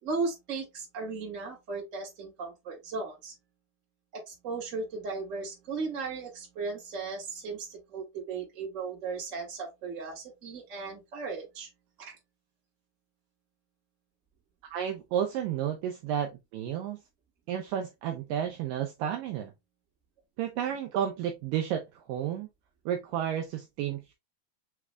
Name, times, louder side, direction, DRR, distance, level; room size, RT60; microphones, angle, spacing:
voice 1, 0.0-3.3 4.1-11.7, right 4 dB, 30° right, 1.6 m, -36 dB
voice 2, 14.7-17.0 17.5-19.5 20.4-22.5 22.9-24.1, right 9 dB, 85° right, 2.0 m, -32 dB
6.0 x 3.2 x 2.3 m
omnidirectional pair, 4.5 m